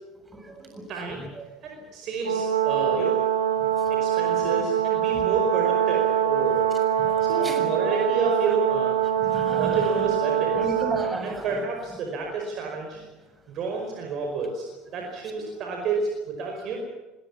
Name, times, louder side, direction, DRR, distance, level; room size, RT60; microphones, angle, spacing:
voice 1, 0.3-0.9 3.6-3.7 4.4-4.6 5.1-5.2 7.0-7.7 9.2-10.0 10.5-11.6, right 2 dB, 20° right, 6 dB, 6.7 m, -34 dB
voice 2, 0.9-1.2 1.6-3.2 3.9-6.7 7.0-9.0 9.6-10.7 11.2-13.0 13.5-14.7 14.9-16.8, right 3 dB, 50° right, 1 dB, 5.0 m, -30 dB
Brass instrument, 2.2-11.2, right 10 dB, 90° right, 2.7 m, -24 dB
25.0 x 19.5 x 7.3 m, 1.2 s
hypercardioid pair, 75°, 0 cm